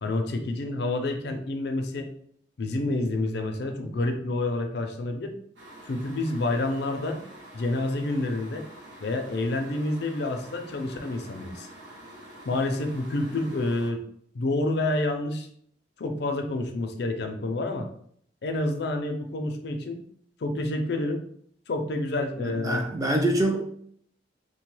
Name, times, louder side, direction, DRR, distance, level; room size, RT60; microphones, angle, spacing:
voice 1, 0.0-2.1 2.6-5.3 5.9-7.2 7.5-8.7 9.0-11.7 12.4-14.0 14.3-15.5 16.0-17.9 18.4-20.0 20.4-21.2 21.7-22.9, left 2 dB, 60° left, 5 dB, 0.4 m, -28 dB
sound 1, 5.6-13.9, right 1 dB, 75° right, 0.7 m, -47 dB
voice 2, 22.4-23.6, right 1 dB, 20° right, 2 dB, 0.4 m, -25 dB
3.1 x 2.2 x 3.1 m, 0.65 s
head